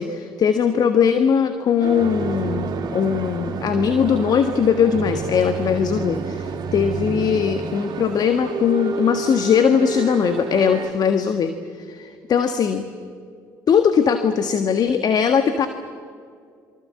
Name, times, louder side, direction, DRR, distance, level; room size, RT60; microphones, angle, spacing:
voice 1, 0.0-12.8 13.7-15.7, left 7 dB, 50° left, 8 dB, 1.7 m, -20 dB
sound 1, 1.8-10.9, right 5 dB, 50° right, 3.4 m, -29 dB
27.5 x 24.5 x 7.6 m, 2.2 s
hypercardioid pair, 60°, 9 cm